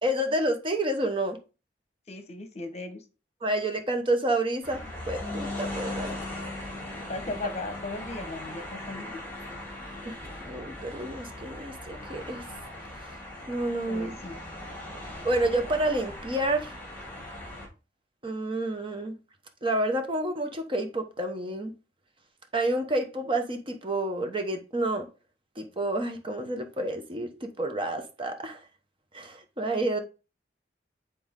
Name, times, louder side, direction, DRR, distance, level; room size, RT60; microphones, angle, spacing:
voice 1, 0.0-1.4 3.4-4.8 5.1-6.1 10.1-10.2 10.5-12.4 13.5-14.1 15.2-16.7 18.2-19.1 19.6-21.7 22.5-25.1 25.6-28.6 29.1-30.0, right 1 dB, 30° right, 1.0 m, -29 dB
voice 2, 2.1-3.0 7.1-9.2 13.9-14.4, left 2 dB, 40° left, 1.1 m, -37 dB
sound 1, 4.6-17.7, left 1 dB, 10° left, 2.7 m, -39 dB
9.4 x 4.2 x 3.7 m
head